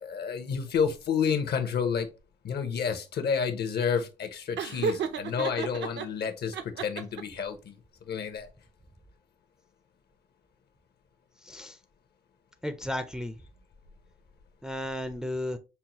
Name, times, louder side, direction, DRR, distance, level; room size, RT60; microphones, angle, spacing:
voice 1, 0.0-2.1 2.4-7.8 8.1-8.5, left 6 dB, 55° left, 0.8 m, -30 dB
Laughter, 4.6-6.1 6.5-7.4, right 6 dB, 65° right, 0.6 m, -32 dB
voice 2, 11.4-11.8 12.6-13.4 14.6-15.6, left 1 dB, 5° right, 0.4 m, -34 dB
5.6 x 2.1 x 2.9 m
cardioid pair, 90°, 20 cm